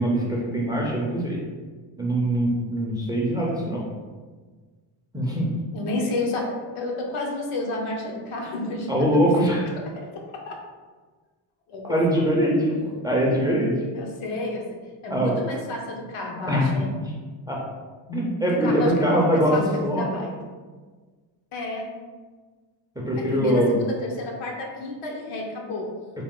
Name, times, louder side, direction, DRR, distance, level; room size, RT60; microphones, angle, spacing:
voice 1, 0.0-1.4 2.0-3.8 5.1-5.5 8.9-9.6 11.9-13.7 15.1-15.4 16.5-16.7 16.9-17.1 17.5-17.6 18.1-20.0 23.0-23.7, equal, 10° right, -3 dB, 0.3 m, -22 dB
voice 2, 5.7-9.2 9.8-10.5 11.7-12.3 13.9-16.9 18.1-20.3 21.5-21.9 23.2-25.9, left 2 dB, 75° left, 1 dB, 0.9 m, -31 dB
3.6 x 2.4 x 3.7 m, 1.4 s
cardioid pair, 145°, 49 cm